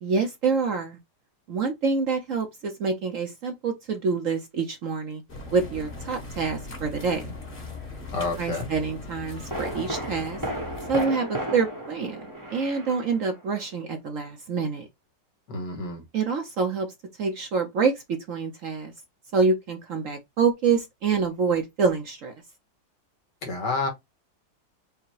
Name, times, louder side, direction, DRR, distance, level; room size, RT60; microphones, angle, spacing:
voice 1, 0.0-1.0 1.5-5.2 5.5-7.2 8.4-10.4 10.9-12.2 12.5-14.9 16.1-16.9 17.2-18.9 19.3-22.3, right 5 dB, 55° right, 1.0 m, -26 dB
sound 1, 5.3-11.1, left 3 dB, 30° left, 1.6 m, -39 dB
voice 2, 8.1-8.7 15.5-16.0 23.4-23.9, left 3 dB, 70° left, 2.3 m, -29 dB
sound 2, 8.6-8.7 9.5-13.6 13.8-13.9, right 1 dB, 15° right, 0.9 m, -34 dB
5.1 x 2.2 x 4.7 m
omnidirectional pair, 2.0 m